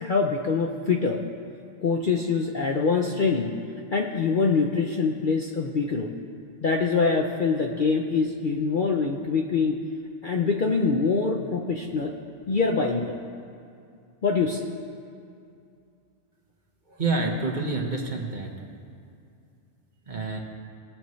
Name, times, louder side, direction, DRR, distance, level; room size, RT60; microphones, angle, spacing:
voice 1, 0.0-1.2 1.8-3.6 3.9-6.1 6.6-9.8 10.2-12.1 12.5-13.1 14.2-14.7, left 4 dB, 50° left, 1 dB, 0.7 m, -24 dB
voice 2, 16.9-18.5 20.1-20.4, right 3 dB, 40° right, 0 dB, 1.1 m, -28 dB
20.0 x 6.8 x 3.1 m, 2.4 s
omnidirectional pair, 1.3 m